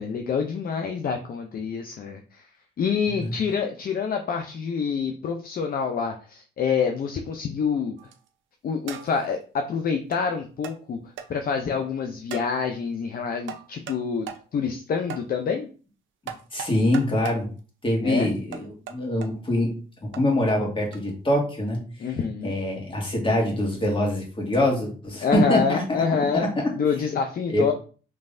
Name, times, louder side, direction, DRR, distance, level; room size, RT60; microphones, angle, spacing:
voice 1, 0.0-2.5 2.8-8.0 8.6-11.0 11.3-15.7 18.0-18.3 22.0-22.5 25.2-26.5 26.8-27.7, left 6 dB, 50° left, 5 dB, 0.6 m, -27 dB
sound 1, 8.0-8.3 8.9-9.3 10.1-10.2 10.6-10.8 11.2-11.3 12.3-12.5 13.5-14.0 14.3-14.4 15.1-15.2 16.3-17.4 18.5-19.3 20.1-20.2 20.9-21.1, right 8 dB, 75° right, 0.7 m, -38 dB
voice 2, 16.5-17.5 17.8-19.7 20.0-21.8 22.4-26.0 26.3-26.7 27.5-27.6, left 1 dB, 25° left, 0 dB, 1.8 m, -24 dB
5.4 x 3.2 x 2.6 m, 0.38 s
cardioid pair, 90°, 20 cm